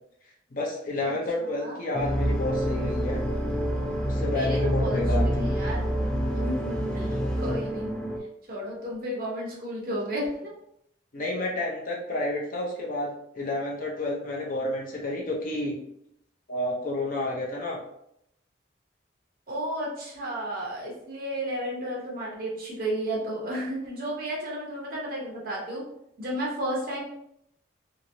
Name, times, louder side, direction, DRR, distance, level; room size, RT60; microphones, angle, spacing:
voice 1, 0.5-3.2 4.0-5.5 11.1-15.8 16.5-17.8, left 2 dB, 45° left, -2 dB, 0.6 m, -30 dB
voice 2, 1.4-1.9 4.3-5.8 6.3-8.0 8.5-10.5 19.5-25.8 26.2-27.0, right 1 dB, 45° right, -4 dB, 0.9 m, -33 dB
sound 1, 1.9-8.2, equal, 5° left, 0.3 m, -27 dB
2.9 x 2.6 x 2.6 m, 0.76 s
head